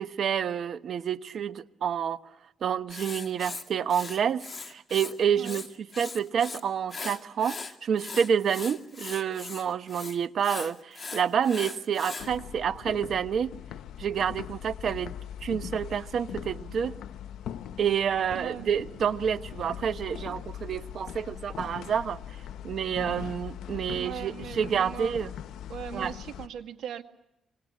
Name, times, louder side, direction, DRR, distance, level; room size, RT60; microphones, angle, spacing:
voice 1, 0.0-2.2 2.6-13.5 14.0-15.1 15.4-17.0 17.8-22.2 22.6-25.3 25.9-26.1, right 8 dB, 60° right, 1.1 m, -28 dB
Writing, 2.9-5.1 5.4-6.6 6.9-12.3, left 4 dB, 30° left, 2.3 m, -39 dB
sound 1, 12.2-26.5, left 10 dB, 80° left, 1.0 m, -41 dB
voice 2, 18.3-18.7 23.9-25.2 25.7-27.0, right 9 dB, 75° right, 2.0 m, -39 dB
25.5 x 25.5 x 8.5 m
cardioid pair, 90°, 0 cm